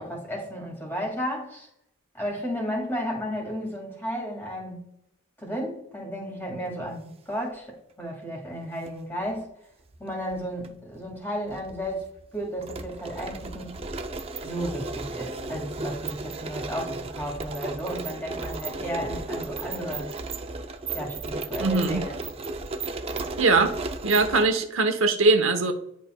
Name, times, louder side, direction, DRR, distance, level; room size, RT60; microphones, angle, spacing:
voice 1, 0.0-1.7 2.1-4.8 5.4-9.5 10.0-12.1 12.3-13.7 14.4-20.1 20.9-22.2, equal, 10° left, -1 dB, 2.0 m, -33 dB
sound 1, 8.6-8.9 9.9-10.7 11.0-11.1 11.5-24.4, right 3 dB, 30° right, 0.4 m, -35 dB
voice 2, 21.6-22.0 23.4-23.7 24.0-25.7, right 3 dB, 70° right, 6 dB, 0.9 m, -21 dB
10.5 x 4.1 x 2.2 m, 0.75 s
head